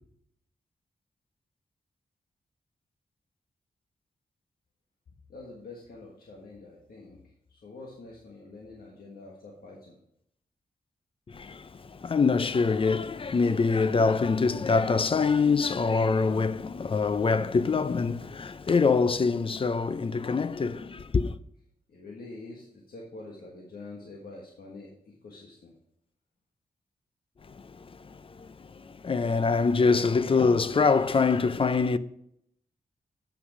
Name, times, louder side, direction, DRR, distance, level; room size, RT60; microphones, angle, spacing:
voice 1, 5.3-7.2 7.5-10.0 21.9-25.7, left 2 dB, 80° left, 1.5 m, -46 dB
voice 2, 11.3-21.3 27.5-32.0, left 4 dB, 35° left, 0.4 m, -25 dB
8.1 x 6.0 x 4.9 m
wide cardioid pair, 95°, 15 cm